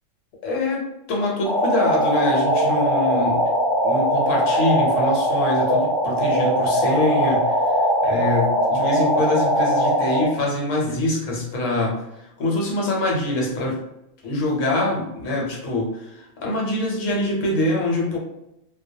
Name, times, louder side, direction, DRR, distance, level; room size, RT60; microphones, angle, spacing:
voice 1, 0.4-3.5 3.8-7.7 8.0-13.8 14.2-18.2, left 2 dB, 75° left, -2 dB, 1.1 m, -24 dB
sound 1, 1.4-10.3, equal, 35° left, 0.6 m, -20 dB
2.2 x 2.2 x 2.7 m, 0.87 s
omnidirectional pair, 1.3 m